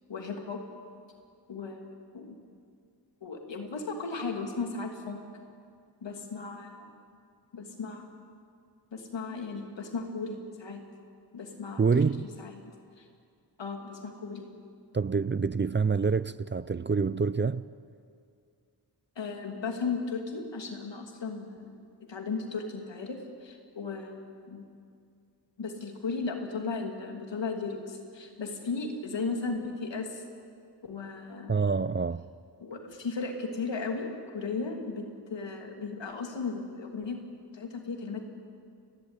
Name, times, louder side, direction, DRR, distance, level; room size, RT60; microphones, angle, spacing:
voice 1, 0.1-0.6 1.5-1.8 2.1-2.4 3.2-5.4 6.0-6.9 7.5-8.1 8.9-10.8 11.3-12.7 13.0-13.1 13.6-14.5 19.2-21.7 22.1-24.1 24.5-24.6 25.6-30.2 30.8-31.6 32.6-35.0 35.3-37.2 37.5-38.2, left 4 dB, 80° left, 2.8 m, -36 dB
voice 2, 11.8-12.2 14.9-17.6 31.5-32.2, right 5 dB, 25° right, 0.5 m, -26 dB
29.5 x 12.0 x 9.1 m
cardioid pair, 50°, 43 cm